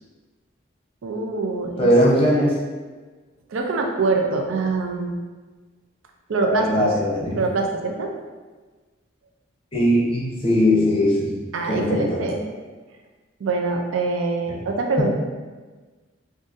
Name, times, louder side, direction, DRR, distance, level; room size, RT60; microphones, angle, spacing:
voice 1, 1.0-1.9 3.5-5.1 6.3-6.9 7.3-8.1 11.5-12.4 13.4-15.1, right 3 dB, 90° right, 2 dB, 0.4 m, -24 dB
voice 2, 1.8-2.5 6.5-7.4 9.7-11.3 11.7-12.2, equal, 30° left, -5 dB, 0.6 m, -19 dB
3.8 x 2.5 x 2.5 m, 1.3 s
head